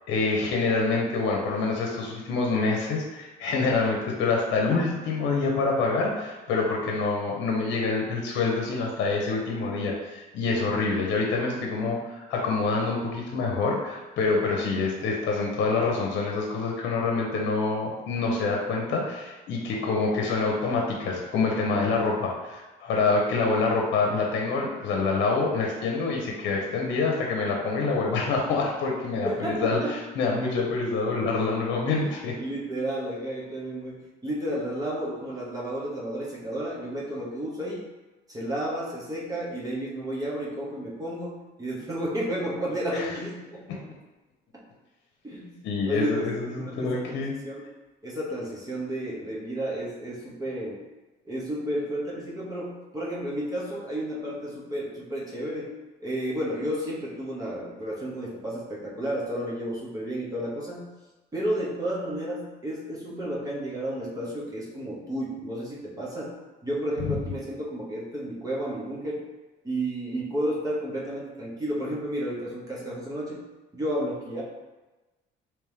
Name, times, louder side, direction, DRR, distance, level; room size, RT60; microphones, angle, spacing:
voice 1, 0.1-32.3 42.9-43.1 43.7-43.8 45.6-47.3, left 3 dB, 70° left, -1 dB, 0.8 m, -26 dB
voice 2, 29.2-30.0 31.9-37.8 38.3-43.8 44.5-44.6 45.2-45.6 45.8-47.2 47.4-47.7 48.0-50.8 51.3-60.8 61.3-66.3 66.6-69.2 69.6-73.4 73.7-74.4, right 1 dB, 20° right, -4 dB, 1.0 m, -32 dB
3.4 x 3.0 x 3.3 m, 1.1 s
cardioid pair, 120°, 19 cm